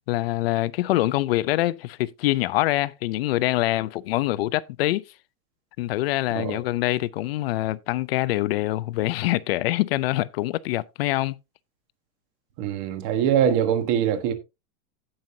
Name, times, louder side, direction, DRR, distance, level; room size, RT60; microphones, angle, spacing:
voice 1, 0.1-5.0 5.8-11.3, left 16 dB, 45° left, 0.5 m, -24 dB
voice 2, 12.6-14.3, right 9 dB, 35° right, 1.4 m, -23 dB
16.5 x 5.6 x 2.7 m
supercardioid pair, 175°, 41 cm